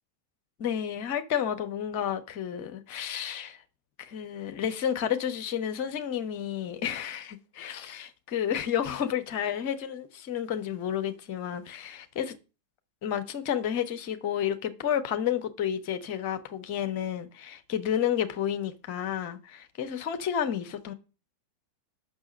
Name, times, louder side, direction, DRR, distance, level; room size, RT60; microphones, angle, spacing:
voice 1, 0.6-3.6 4.0-12.3 13.0-20.9, left 9 dB, 45° left, 1.1 m, -31 dB
6.1 x 5.9 x 6.3 m
figure-of-eight pair, 90°, 0 cm